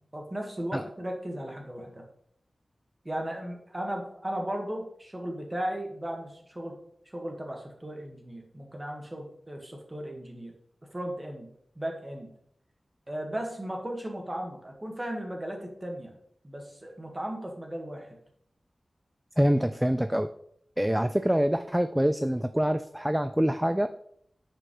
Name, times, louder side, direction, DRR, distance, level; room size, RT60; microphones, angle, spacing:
voice 1, 0.1-2.0 3.1-6.8 7.1-10.5 10.9-11.5 11.8-12.3 13.1-16.1 16.4-18.1, right 1 dB, 25° right, 1 dB, 1.6 m, -36 dB
voice 2, 19.4-20.3 20.8-23.9, equal, 10° right, 10 dB, 0.3 m, -25 dB
9.6 x 5.2 x 3.2 m, 0.69 s
wide cardioid pair, 80°, 0 cm